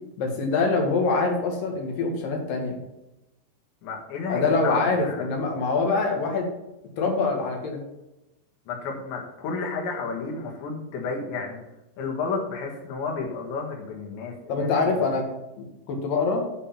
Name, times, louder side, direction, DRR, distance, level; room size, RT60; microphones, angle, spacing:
voice 1, 0.2-2.8 4.3-6.5 7.0-7.8 14.5-15.2 15.6-16.4, left 3 dB, 60° left, 2 dB, 3.1 m, -24 dB
voice 2, 3.8-5.3 8.7-11.6 12.0-15.1, left 4 dB, 80° left, 0 dB, 4.0 m, -32 dB
9.7 x 5.6 x 5.8 m, 0.95 s
omnidirectional pair, 5.1 m